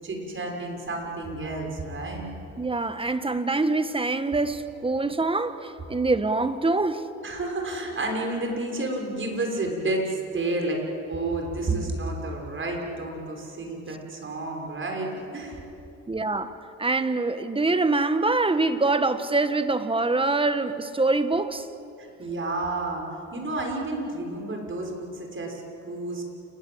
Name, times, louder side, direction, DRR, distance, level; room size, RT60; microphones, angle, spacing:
voice 1, 0.0-2.3 7.2-10.8 11.1-15.6 22.0-23.0 23.3-26.2, right 2 dB, 40° right, 6.4 m, -30 dB
voice 2, 2.6-7.0 16.1-21.7, right 3 dB, 20° right, 1.5 m, -25 dB
29.0 x 20.5 x 8.1 m
cardioid pair, 90°, 30 cm